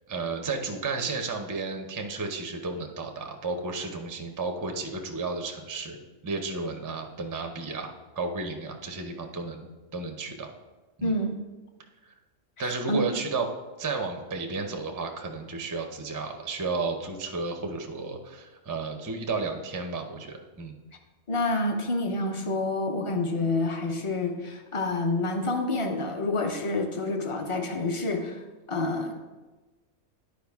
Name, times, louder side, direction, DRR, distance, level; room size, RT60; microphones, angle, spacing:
voice 1, 0.1-6.0 6.2-9.7 9.9-10.5 11.0-11.2 12.0-12.1 12.6-13.5 13.8-20.8, right 3 dB, 30° right, 4 dB, 0.3 m, -33 dB
voice 2, 11.0-11.3 12.6-13.0 21.3-28.4 28.7-29.1, left 2 dB, 35° left, 4 dB, 0.6 m, -28 dB
10.5 x 4.8 x 3.5 m, 1.2 s
omnidirectional pair, 1.4 m